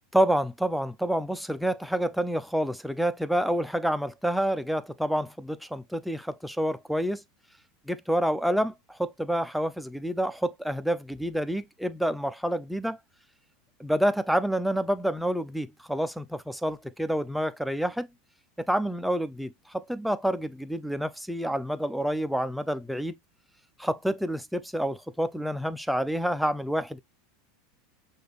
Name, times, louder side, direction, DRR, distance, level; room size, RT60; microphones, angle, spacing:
voice 1, 0.1-7.2 7.9-13.0 13.8-18.1 18.6-23.1 23.8-27.0, equal, ahead, 0.5 m, -28 dB
6.2 x 2.5 x 3.3 m
hypercardioid pair, 105°, 0 cm